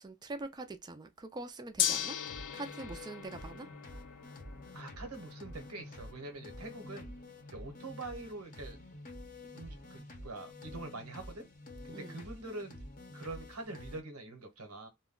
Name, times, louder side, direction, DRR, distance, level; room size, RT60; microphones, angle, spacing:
voice 1, 0.0-3.7 11.9-12.2, right 2 dB, 20° right, 0.3 m, -44 dB
Gong, 1.8-12.0, left 10 dB, 85° left, 0.4 m, -42 dB
sound 1, 2.2-14.0, left 1 dB, 40° left, 0.7 m, -49 dB
voice 2, 4.7-7.1 7.5-8.8 9.5-11.5 11.8-12.8 13.1-14.9, right 2 dB, 90° right, 1.0 m, -44 dB
2.2 x 2.1 x 3.6 m
head